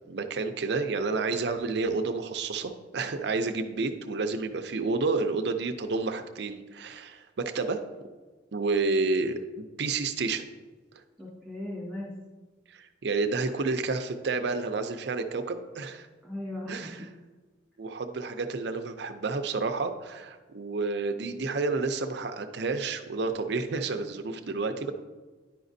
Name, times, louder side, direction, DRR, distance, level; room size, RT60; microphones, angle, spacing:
voice 1, 0.1-7.8 8.5-10.5 12.7-16.1 16.7-17.1 17.8-24.9, right 3 dB, 60° right, 7 dB, 0.5 m, -30 dB
voice 2, 11.2-12.2 16.2-17.0, left 1 dB, 5° left, -7 dB, 1.9 m, -37 dB
10.5 x 5.0 x 2.6 m, 1.3 s
head